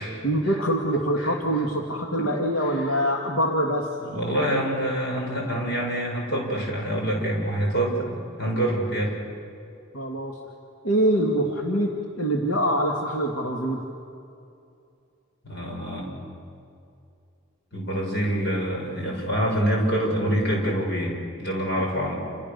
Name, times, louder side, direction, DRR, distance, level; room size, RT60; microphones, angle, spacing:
voice 1, 0.2-3.9 9.9-10.4 10.8-11.9 12.2-13.8 22.0-22.1, right 1 dB, 85° left, 0 dB, 2.3 m, -24 dB
voice 2, 4.0-9.1 15.4-16.1 17.7-22.2, right 1 dB, 55° left, -1 dB, 6.8 m, -26 dB
29.5 x 29.0 x 6.9 m, 2.5 s
head